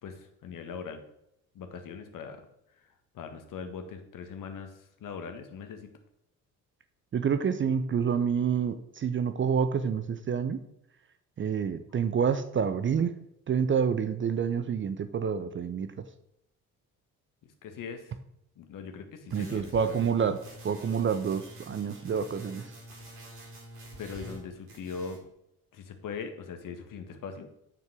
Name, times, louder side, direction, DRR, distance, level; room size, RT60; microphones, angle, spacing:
voice 1, 0.0-1.0 1.5-2.4 3.1-4.7 5.0-5.9 17.6-18.1 18.6-20.0 24.0-25.2 25.7-27.5, left 5 dB, 45° left, 7 dB, 1.7 m, -40 dB
voice 2, 7.1-10.6 11.4-13.1 13.5-15.9 19.3-20.4 20.6-22.7, right 7 dB, 25° right, 10 dB, 0.7 m, -28 dB
sound 1, 19.3-24.4 24.7-25.2, right 1 dB, 55° right, 3.2 m, -47 dB
7.4 x 6.1 x 6.3 m, 0.79 s
figure-of-eight pair, 50°, 44 cm